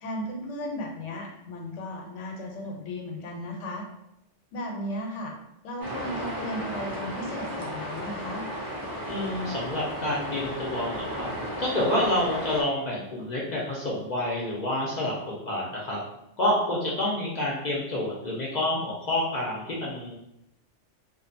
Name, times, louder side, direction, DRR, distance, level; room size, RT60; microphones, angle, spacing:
voice 1, 0.0-3.8 4.5-5.3 5.6-8.5, left 1 dB, 85° left, 0 dB, 1.0 m, -35 dB
sound 1, 5.8-12.6, equal, 35° right, 0.3 m, -34 dB
voice 2, 9.1-11.3 11.6-16.0 16.4-20.2, left 1 dB, 55° left, -4 dB, 0.5 m, -28 dB
2.6 x 2.1 x 2.5 m, 0.87 s
omnidirectional pair, 1.2 m